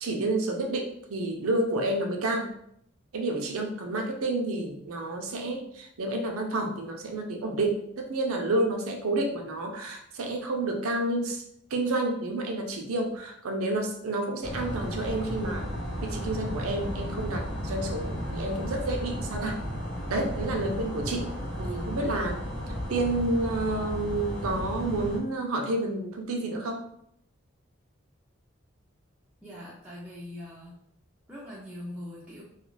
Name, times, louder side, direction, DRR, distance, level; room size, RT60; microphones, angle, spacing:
voice 1, 0.0-2.5 3.1-11.4 11.7-15.7 16.0-19.6 20.1-21.3 21.6-22.4 22.9-26.8, right 2 dB, 90° right, 2 dB, 0.5 m, -30 dB
sound 1, 14.4-25.2, equal, 55° left, 0.7 m, -34 dB
voice 2, 29.4-30.7 31.3-32.4, left 1 dB, 5° right, -7 dB, 0.4 m, -42 dB
2.4 x 2.3 x 3.1 m, 0.70 s
head